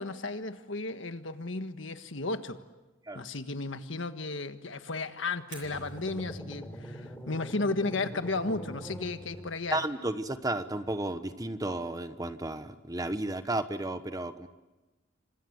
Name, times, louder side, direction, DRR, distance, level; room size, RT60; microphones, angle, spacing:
voice 1, 0.0-2.6 3.1-9.8, left 3 dB, 75° left, 9 dB, 1.5 m, -34 dB
Fire, 5.4-13.3, right 6 dB, 65° right, 8.0 m, -59 dB
sound 1, 5.6-9.9, equal, 5° left, 3.5 m, -43 dB
voice 2, 9.7-14.5, right 1 dB, 20° right, 10 dB, 1.1 m, -33 dB
28.5 x 26.0 x 8.0 m, 1.1 s
head